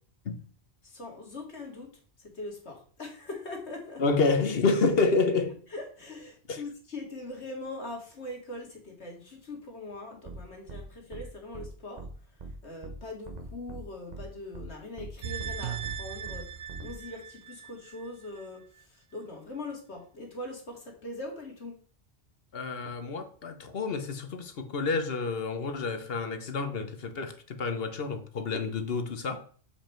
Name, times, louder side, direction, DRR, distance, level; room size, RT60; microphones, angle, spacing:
voice 1, 0.8-1.9 2.2-4.0 5.7-12.1 12.6-16.5 16.8-21.8, left 2 dB, 80° left, 2.4 m, -41 dB
voice 2, 4.0-5.6 6.5-6.6 22.5-29.4, left 4 dB, 60° left, 1.2 m, -29 dB
sound 1, 10.3-10.4 10.7-10.8 11.1-11.2 11.5-11.7 12.0-12.1 12.4-12.5 12.8-13.0 13.3-13.8 14.1-14.2 14.5-14.7 15.0-15.1 15.4-15.5 15.8-16.0 16.3-16.4 16.7-16.9, right 3 dB, 40° right, 1.0 m, -41 dB
sound 2, 15.2-18.4 18.8-18.9, right 8 dB, 75° right, 1.0 m, -38 dB
7.2 x 5.2 x 4.4 m
omnidirectional pair, 1.1 m